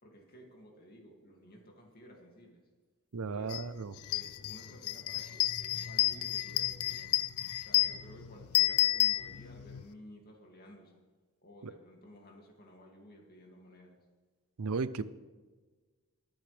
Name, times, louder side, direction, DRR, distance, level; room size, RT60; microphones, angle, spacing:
voice 1, 0.0-2.6 3.2-3.6 4.1-7.2 7.6-11.0 11.4-14.0, equal, 45° left, 0 dB, 2.4 m, -54 dB
voice 2, 3.1-3.9 14.6-15.0, right 4 dB, 85° right, 15 dB, 0.6 m, -34 dB
sound 1, 3.5-3.6 4.0-9.8, left 15 dB, 85° left, 0.5 m, -31 dB
23.0 x 9.0 x 3.4 m, 1.4 s
head